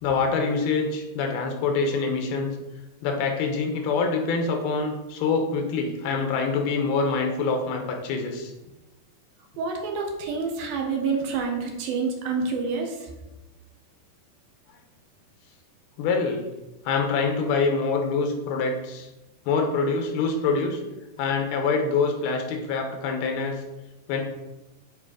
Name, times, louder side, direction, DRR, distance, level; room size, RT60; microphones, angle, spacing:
voice 1, 0.0-2.6 3.0-8.5 16.0-16.5 16.9-19.1 19.5-20.8 21.2-23.6 24.1-24.2, left 4 dB, 85° left, 3 dB, 3.1 m, -25 dB
voice 2, 9.6-13.0, right 4 dB, 75° right, 2 dB, 3.0 m, -28 dB
9.9 x 4.5 x 5.1 m, 1.0 s
omnidirectional pair, 4.5 m